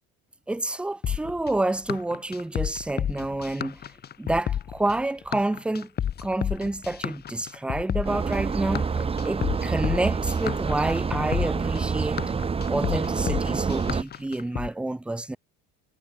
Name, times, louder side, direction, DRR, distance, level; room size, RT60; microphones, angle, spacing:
voice 1, 0.5-3.8 4.2-5.9 6.2-12.2 12.7-15.4, right 2 dB, 5° right, 0.5 m, -28 dB
sound 1, 1.0-14.7, left 9 dB, 35° left, 1.2 m, -31 dB
sound 2, 8.0-14.0, right 5 dB, 20° right, 1.3 m, -27 dB
supercardioid pair, 110°, 29 cm